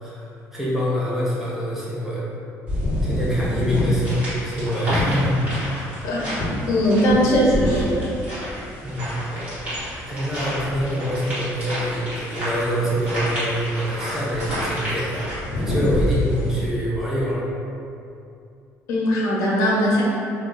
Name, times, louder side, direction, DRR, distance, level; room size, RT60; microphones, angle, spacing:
voice 1, 0.5-2.3 3.0-5.7 8.8-9.5 10.1-15.3 15.6-17.4, equal, 5° right, -8 dB, 0.6 m, -25 dB
sound 1, 2.7-16.6, left 1 dB, 20° right, 1.4 m, -27 dB
voice 2, 6.7-8.1 18.9-20.0, equal, 70° left, -4 dB, 0.7 m, -19 dB
2.9 x 2.2 x 3.7 m, 2.6 s
cardioid pair, 170°, 6 cm